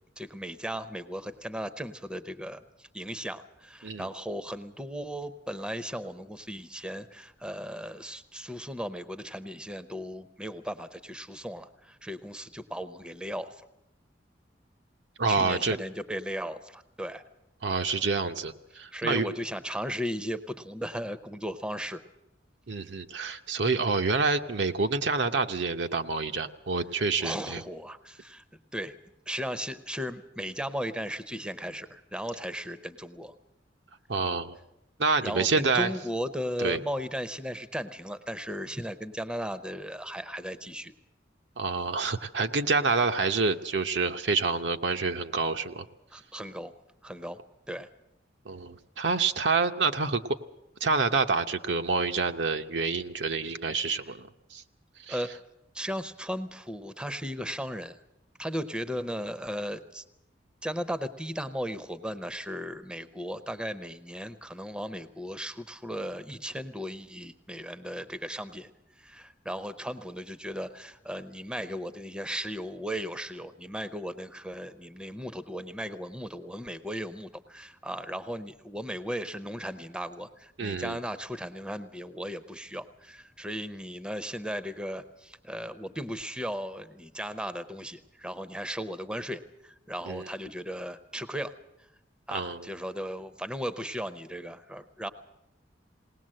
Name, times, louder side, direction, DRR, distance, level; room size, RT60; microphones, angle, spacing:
voice 1, 0.2-13.6 15.3-17.2 18.9-22.0 27.2-28.4 28.7-28.9 29.3-33.3 35.2-40.9 46.1-46.7 47.0-47.4 47.7-47.9 55.1-55.4 55.7-58.0 58.4-60.0 60.6-68.7 69.0-91.5 92.3-95.1, equal, 5° right, 12 dB, 0.7 m, -36 dB
voice 2, 15.2-15.8 17.6-19.3 22.7-27.6 34.1-34.6 35.0-35.9 36.6-36.8 41.6-45.9 48.4-50.2 50.8-54.6 55.0-55.2 80.6-81.0 90.1-90.3 92.3-92.6, right 4 dB, 75° right, 6 dB, 0.9 m, -27 dB
20.0 x 18.5 x 7.6 m, 0.87 s
head